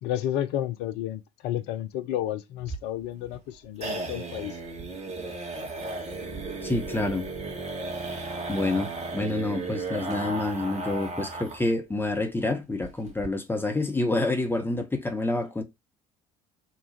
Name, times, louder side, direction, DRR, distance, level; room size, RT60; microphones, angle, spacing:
voice 1, 0.0-4.6, left 11 dB, 60° left, 0.6 m, -31 dB
sound 1, 2.6-11.7 12.0-12.1 12.4-12.5 12.8-13.3, right 3 dB, 35° right, 1.3 m, -35 dB
voice 2, 6.6-7.3 8.1-8.2 8.5-15.6, left 2 dB, 10° left, 1.0 m, -28 dB
3.0 x 2.3 x 4.1 m
figure-of-eight pair, 55°, 20 cm